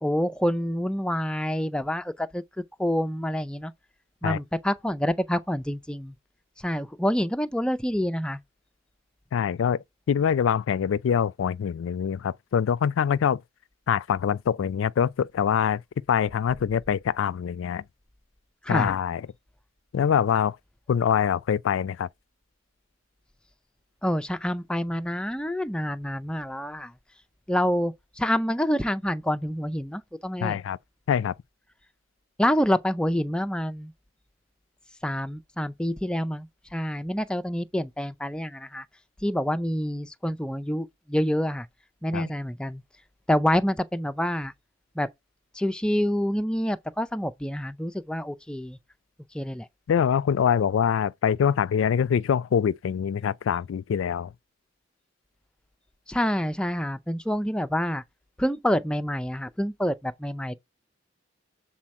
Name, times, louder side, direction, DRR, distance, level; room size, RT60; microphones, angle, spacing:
voice 1, 0.0-2.4 2.8-3.7 4.2-6.1 6.6-8.4 18.6-18.9 24.0-26.9 27.5-30.6 32.4-33.9 35.0-38.8 39.2-41.7 42.0-42.8 43.3-44.5 45.0-45.1 45.5-48.8 49.3-49.7 56.1-58.0 58.4-60.5, equal, 5° left, 0.4 m, -27 dB
voice 2, 9.3-9.8 10.1-13.4 13.9-15.8 16.1-17.8 18.7-19.2 19.9-20.6 20.9-22.1 30.4-30.8 31.1-31.3 42.1-42.3 49.9-54.3, left 8 dB, 90° left, 0.3 m, -24 dB
7.4 x 4.2 x 4.2 m
head